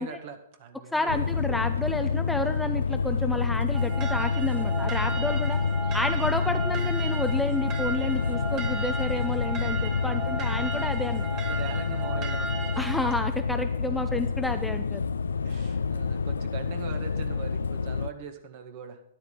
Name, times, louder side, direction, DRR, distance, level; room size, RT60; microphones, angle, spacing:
voice 1, 0.0-1.7 10.2-10.5 11.3-13.0 15.4-19.0, right 7 dB, 50° right, 7 dB, 1.7 m, -42 dB
voice 2, 0.9-5.6 5.9-11.3 12.8-15.0, left 2 dB, 5° left, 7 dB, 0.6 m, -30 dB
sound 1, 1.1-18.1, left 5 dB, 85° left, 0.4 m, -28 dB
sound 2, 3.7-13.2, right 4 dB, 30° right, 1.7 m, -35 dB
12.5 x 10.5 x 3.9 m, 0.77 s
hypercardioid pair, 125°, 0 cm